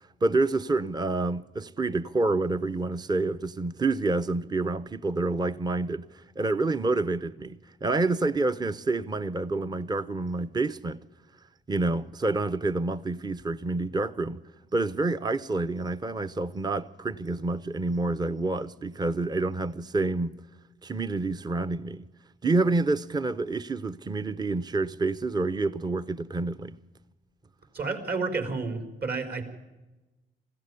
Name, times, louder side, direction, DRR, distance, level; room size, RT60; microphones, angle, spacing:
voice 1, 0.2-11.0 11.7-14.4 14.7-20.4 20.8-22.1 22.4-26.8, right 3 dB, 20° right, 0.7 m, -28 dB
voice 2, 27.7-29.4, right 4 dB, 55° right, 4.2 m, -30 dB
21.0 x 15.5 x 9.8 m
cardioid pair, 90°, 20 cm